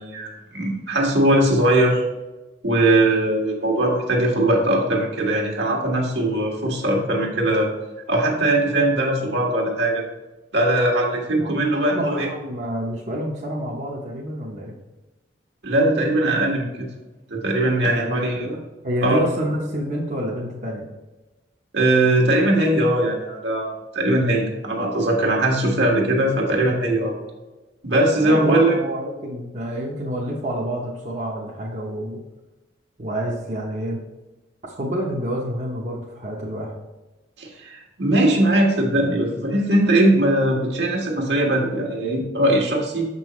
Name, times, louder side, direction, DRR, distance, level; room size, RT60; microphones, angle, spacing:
voice 1, 0.0-2.0 2.6-7.7 8.1-10.0 10.5-12.3 15.6-16.9 17.3-18.5 19.0-19.2 21.7-27.1 27.8-28.8 37.4-43.1, right 1 dB, 70° right, 0 dB, 1.5 m, -20 dB
voice 2, 11.8-14.7 17.8-20.9 28.2-32.2 33.0-34.0 34.6-36.7, equal, 40° right, -3 dB, 0.9 m, -28 dB
6.8 x 5.4 x 3.1 m, 1.1 s
head